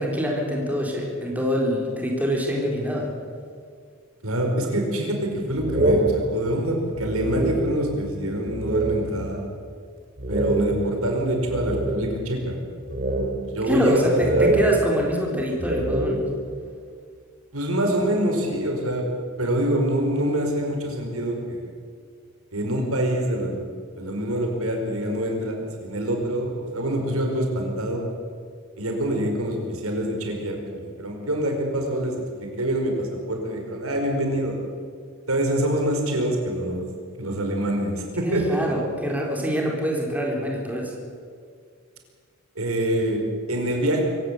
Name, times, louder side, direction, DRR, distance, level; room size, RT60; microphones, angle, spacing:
voice 1, 0.0-3.1 13.7-16.3 38.2-40.9, equal, 5° right, -1 dB, 4.1 m, -25 dB
voice 2, 4.2-9.5 10.3-12.6 13.5-14.5 17.5-19.1 19.4-21.7 22.5-28.1 28.8-34.6 35.3-36.8 37.2-38.6 42.5-44.0, right 1 dB, 75° right, 2 dB, 4.9 m, -25 dB
sound 1, 5.6-8.0 8.5-9.3 9.7-9.8 10.2-12.4 12.9-13.9 14.2-16.6, right 2 dB, 40° right, 3.3 m, -25 dB
24.5 x 16.5 x 8.4 m, 2.1 s
head